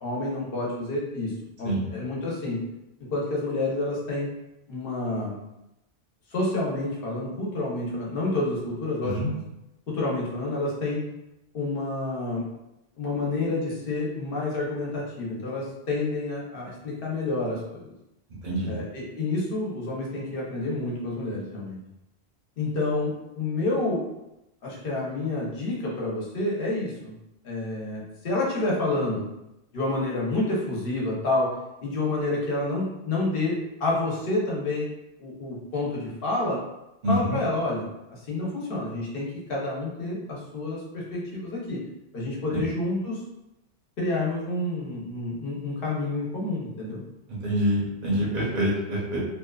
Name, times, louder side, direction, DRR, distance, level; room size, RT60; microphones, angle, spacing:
voice 1, 0.0-2.6 3.1-4.3 4.7-5.4 6.3-9.4 9.9-11.0 11.5-12.4 13.0-17.9 18.7-21.8 22.6-24.0 24.6-27.2 27.4-29.3 29.7-31.5 31.8-34.9 35.2-36.6 37.1-41.8 42.1-43.2 44.0-47.0, left 2 dB, 60° left, -4 dB, 0.9 m, -29 dB
voice 2, 18.4-18.7 37.0-37.4 42.5-42.6 47.3-49.2, equal, 45° right, -6 dB, 0.8 m, -26 dB
2.7 x 2.3 x 2.3 m, 0.89 s
omnidirectional pair, 1.1 m